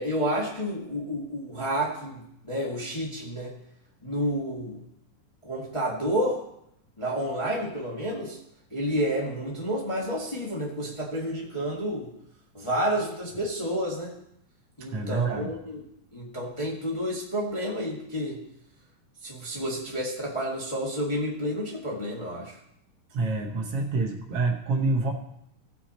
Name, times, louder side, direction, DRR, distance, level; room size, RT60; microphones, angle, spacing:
voice 1, 0.0-3.5 4.0-4.8 5.4-6.4 7.0-8.4 8.7-12.1 12.5-14.1 14.8-15.8 16.1-18.4 19.2-22.6, equal, 45° left, -4 dB, 0.4 m, -30 dB
voice 2, 14.9-15.6 23.1-25.1, right 3 dB, 90° right, 1 dB, 1.3 m, -27 dB
17.0 x 5.9 x 4.2 m, 0.76 s
omnidirectional pair, 4.1 m